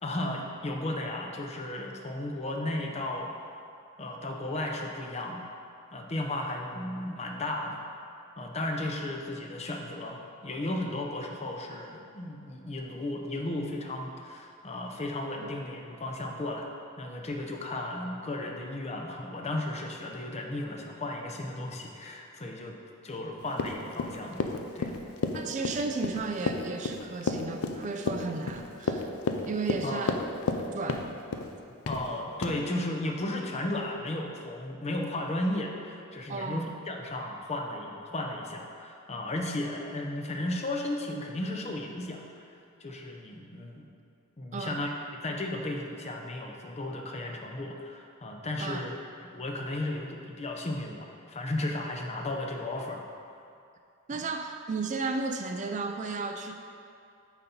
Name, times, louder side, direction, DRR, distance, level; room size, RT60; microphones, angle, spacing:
voice 1, 0.0-3.3 4.0-5.5 5.9-7.8 8.4-16.7 17.0-22.8 23.0-24.4 24.7-25.0 29.8-30.1 31.9-42.2 42.8-43.9 44.4-48.9 49.2-53.0 54.1-54.2, left 1 dB, 30° left, 1 dB, 0.6 m, -34 dB
Run, 23.5-30.6 30.9-31.5 31.9-32.1 32.4-32.5, left 4 dB, 80° left, 0.5 m, -31 dB
voice 2, 25.3-29.1 29.5-30.2 30.7-31.2 36.3-36.7 44.5-44.8 48.6-48.9 54.1-56.5, right 3 dB, 35° right, 5 dB, 0.3 m, -34 dB
9.0 x 4.0 x 4.3 m, 2.5 s
head